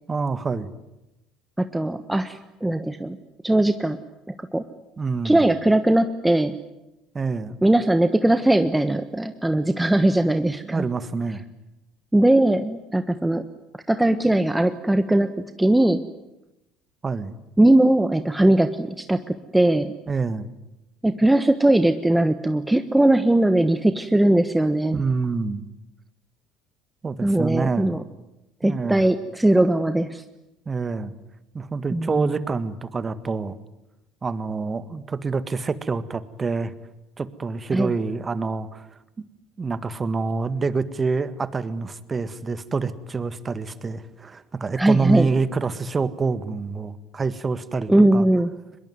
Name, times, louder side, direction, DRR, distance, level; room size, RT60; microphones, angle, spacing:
voice 1, 0.1-0.7 5.0-5.4 7.1-7.6 10.7-11.4 17.0-17.3 20.1-20.5 24.9-25.7 27.0-28.0 28.6-29.0 30.7-31.1 31.5-33.6 34.2-36.7 37.2-38.9 39.2-39.3 39.6-48.2, right 4 dB, 25° right, 14 dB, 1.7 m, -27 dB
voice 2, 1.6-3.2 3.4-4.0 4.4-4.6 5.2-6.6 7.6-10.9 12.1-13.5 13.9-15.3 15.6-16.0 17.6-19.9 21.0-25.0 27.2-28.0 28.6-30.2 31.9-32.4 37.7-37.9 44.8-45.3 47.9-48.5, right 1 dB, 10° right, 10 dB, 1.3 m, -20 dB
24.0 x 22.0 x 9.4 m, 0.92 s
hypercardioid pair, 65°, 0 cm